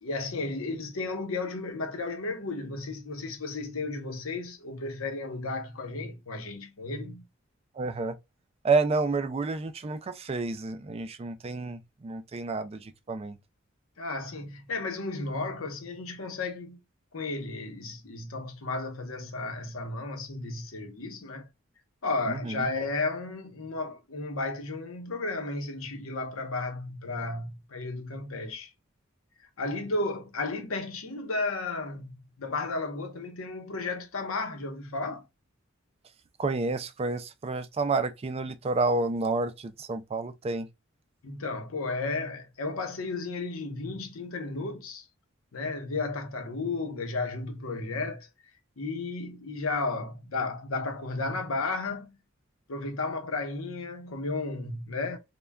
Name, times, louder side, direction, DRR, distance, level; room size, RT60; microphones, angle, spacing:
voice 1, 0.0-7.2 14.0-16.8 17.1-21.5 22.0-28.7 29.6-32.1 32.4-35.3 41.2-45.1 45.5-48.3 48.8-52.2 52.7-55.2, left 3 dB, 90° left, 0.8 m, -33 dB
voice 2, 7.7-8.2 8.6-13.4 22.3-22.6 36.4-40.7, right 3 dB, 30° right, 0.3 m, -29 dB
3.3 x 2.2 x 2.2 m
head